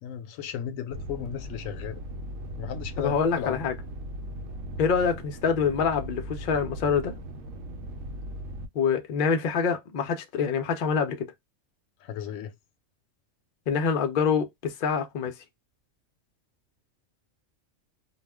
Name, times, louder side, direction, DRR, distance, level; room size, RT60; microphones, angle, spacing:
voice 1, 0.0-2.0 2.6-3.7 12.0-12.5, left 9 dB, 85° left, 1.0 m, -35 dB
sound 1, 0.9-8.7, equal, 75° right, 1.0 m, -38 dB
voice 2, 3.0-3.7 4.8-7.1 8.7-11.3 13.7-15.3, left 6 dB, 55° left, 0.6 m, -25 dB
2.3 x 2.1 x 3.4 m
omnidirectional pair, 1.3 m